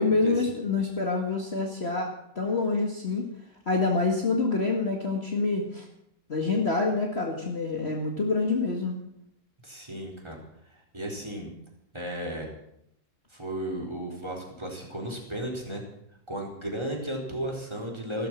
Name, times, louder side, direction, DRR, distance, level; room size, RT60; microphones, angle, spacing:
voice 1, 0.0-2.1 2.4-3.3 3.7-5.9 6.3-8.9, left 3 dB, 35° left, 0 dB, 2.1 m, -26 dB
voice 2, 9.6-10.4 10.7-11.5 11.9-12.5 13.3-15.8 16.3-18.3, right 1 dB, 15° right, 0 dB, 4.2 m, -34 dB
16.0 x 13.5 x 6.2 m, 0.73 s
omnidirectional pair, 2.0 m